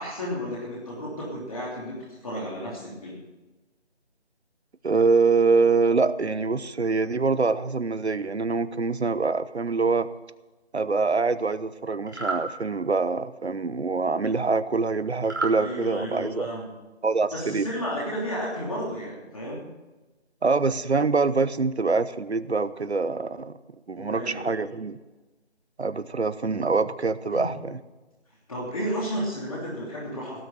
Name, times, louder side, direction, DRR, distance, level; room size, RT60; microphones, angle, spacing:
voice 1, 0.0-3.2 15.5-16.7 17.3-19.6 24.0-24.6 27.3-27.5 28.5-30.4, equal, 30° left, -5 dB, 3.1 m, -32 dB
voice 2, 4.8-10.1 10.7-16.5 17.0-17.7 20.4-23.5 23.9-25.0 25.8-27.8, right 4 dB, 70° right, 14 dB, 0.9 m, -24 dB
sound 1, 12.0-12.5 15.2-15.6, right 3 dB, 20° right, 1.2 m, -29 dB
17.5 x 6.5 x 7.9 m, 1.1 s
figure-of-eight pair, 165°, 34 cm